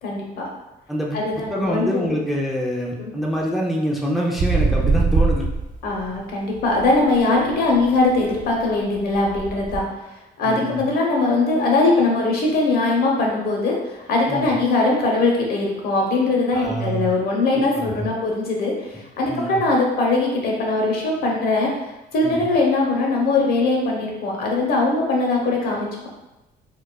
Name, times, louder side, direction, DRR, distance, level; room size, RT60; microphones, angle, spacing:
voice 1, 0.0-0.5 1.1-2.1 3.0-3.1 5.8-9.8 10.4-26.1, left 2 dB, 65° left, -1 dB, 0.9 m, -21 dB
voice 2, 0.9-1.2 1.5-5.5 10.4-10.8 14.3-14.5 16.5-17.1 17.7-18.1 19.3-19.6 22.2-22.4, equal, ahead, -2 dB, 0.4 m, -25 dB
sound 1, 4.4-6.2 6.5-9.8, right 4 dB, 50° right, 0.5 m, -24 dB
4.5 x 2.4 x 2.3 m, 1.0 s
cardioid pair, 110°, 17 cm